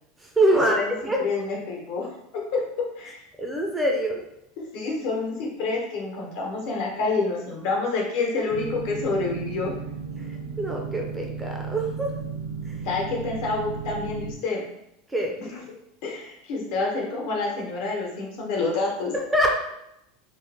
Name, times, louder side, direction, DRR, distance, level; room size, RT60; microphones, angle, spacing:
voice 1, 0.2-1.2 3.4-4.2 10.2-12.1 12.7-12.9 15.1-15.3 19.1-19.5, right 1 dB, 10° right, 1 dB, 0.4 m, -25 dB
voice 2, 1.2-2.6 3.0-3.2 4.6-9.7 12.8-14.6 15.4-15.5 16.0-19.1, left 3 dB, 65° left, -1 dB, 1.0 m, -28 dB
sound 1, 8.5-14.3, right 5 dB, 80° right, 0.7 m, -34 dB
3.0 x 2.5 x 3.4 m, 0.82 s
supercardioid pair, 155°, 0 cm